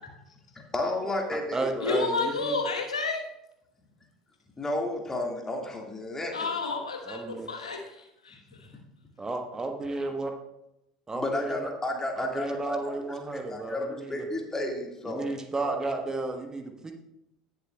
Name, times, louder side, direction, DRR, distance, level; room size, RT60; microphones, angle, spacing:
voice 1, 0.7-1.9 4.6-6.5 11.1-12.9 13.3-15.3 15.6-15.7, left 2 dB, 15° left, 1 dB, 1.9 m, -32 dB
voice 2, 1.3-2.5 7.1-7.5 9.2-10.3 11.1-11.7 12.2-14.3 15.0-16.9, right 3 dB, 20° right, 5 dB, 1.1 m, -33 dB
voice 3, 1.8-3.2 6.3-8.7, left 4 dB, 80° left, 2 dB, 1.2 m, -31 dB
18.0 x 7.2 x 2.3 m, 0.86 s
figure-of-eight pair, 70°, 3 cm